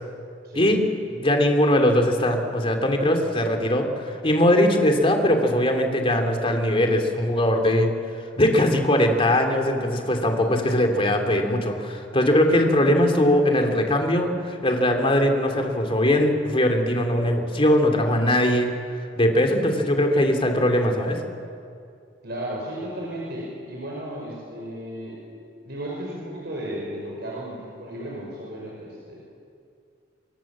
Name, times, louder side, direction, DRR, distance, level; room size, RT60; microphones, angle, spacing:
voice 1, 0.4-0.8 10.0-10.7 22.2-25.2 25.6-29.2, right 1 dB, 60° right, -3 dB, 5.6 m, -34 dB
voice 2, 1.2-7.9 8.4-18.7 19.2-21.2, left 1 dB, 30° left, 3 dB, 3.0 m, -21 dB
25.5 x 24.0 x 7.5 m, 2.4 s
head